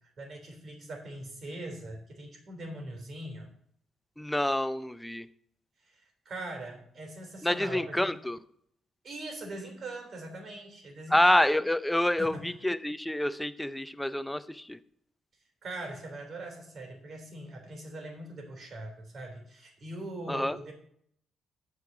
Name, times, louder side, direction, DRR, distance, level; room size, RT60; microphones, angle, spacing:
voice 1, 0.0-3.5 5.8-8.1 9.0-11.2 12.2-12.4 15.6-20.7, right 1 dB, 50° right, 2 dB, 3.4 m, -41 dB
voice 2, 4.2-5.3 7.4-8.4 11.1-14.8 20.3-20.6, left 1 dB, 5° left, 13 dB, 0.5 m, -27 dB
8.2 x 4.9 x 6.9 m, 0.68 s
cardioid pair, 90°, 0 cm